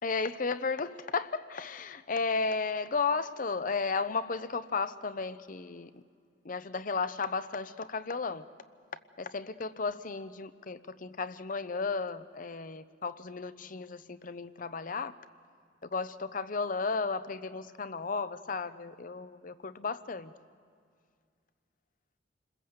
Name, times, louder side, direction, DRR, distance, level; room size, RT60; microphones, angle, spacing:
voice 1, 0.0-6.0 6.4-8.5 9.2-15.1 15.8-20.3, left 4 dB, 45° left, 13 dB, 0.7 m, -34 dB
28.5 x 21.0 x 7.9 m, 2.1 s
head